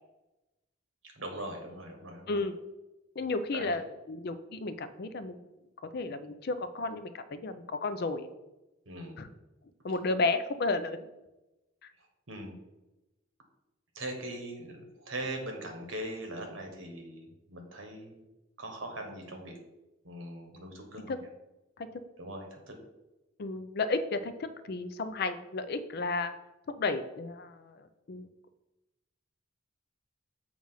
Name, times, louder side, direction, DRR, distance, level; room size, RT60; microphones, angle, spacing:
voice 1, 1.1-2.4 3.5-3.8 8.9-9.2 12.3-12.6 13.9-18.2 18.6-19.6 20.0-21.3 22.2-22.7, right 1 dB, 70° right, 3 dB, 1.2 m, -41 dB
voice 2, 3.2-5.4 5.9-8.3 9.2-9.3 9.8-11.0 21.1-21.2 21.8-21.9 23.4-26.3 26.7-28.3, left 3 dB, 50° left, 11 dB, 0.4 m, -33 dB
7.2 x 2.5 x 5.5 m, 0.99 s
head